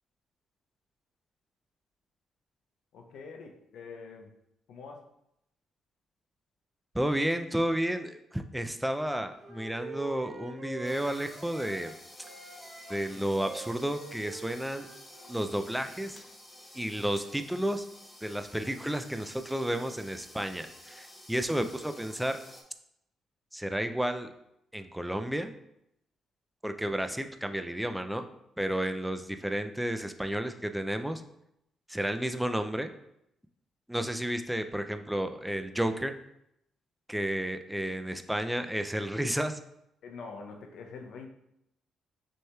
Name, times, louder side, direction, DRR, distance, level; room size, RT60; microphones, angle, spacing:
voice 1, 2.9-4.4 4.7-5.1 40.0-41.3, left 4 dB, 75° left, 3 dB, 0.6 m, -45 dB
voice 2, 6.9-12.0 12.9-14.9 15.3-16.2 16.7-17.9 18.2-22.4 23.5-24.3 24.7-25.5 26.6-28.3 28.6-31.2 31.9-32.9 33.9-36.1 37.1-39.6, right 1 dB, 5° right, 8 dB, 0.3 m, -32 dB
Wind instrument woodwind instrument, 9.0-11.9 12.2-15.7, right 3 dB, 60° right, 1.0 m, -46 dB
sound 1, 10.8-22.6, left 1 dB, 15° left, 0.8 m, -51 dB
6.3 x 2.9 x 2.3 m, 0.80 s
cardioid pair, 90°, 0 cm